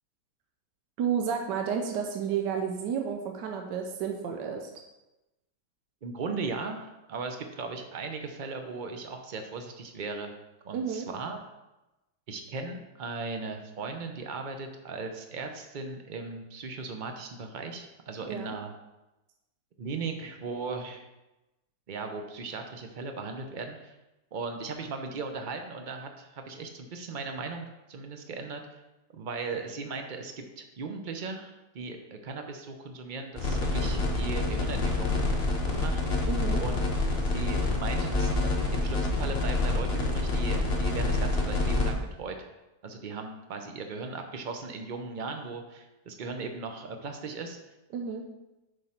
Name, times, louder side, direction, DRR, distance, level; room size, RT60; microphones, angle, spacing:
voice 1, 1.0-4.7 10.7-11.1 18.3-18.5 36.3-36.6 47.9-48.2, right 7 dB, 80° right, 3 dB, 1.3 m, -31 dB
voice 2, 6.0-10.3 10.6-11.4 12.3-18.7 19.8-21.0 21.9-24.0 24.3-28.8 29.1-35.2 35.8-36.0 36.6-36.9 37.3-42.5 42.8-47.6, right 4 dB, 55° right, 5 dB, 0.5 m, -37 dB
sound 1, 33.4-41.9, left 2 dB, 35° left, 1.3 m, -27 dB
7.3 x 5.4 x 4.4 m, 1.0 s
omnidirectional pair, 1.9 m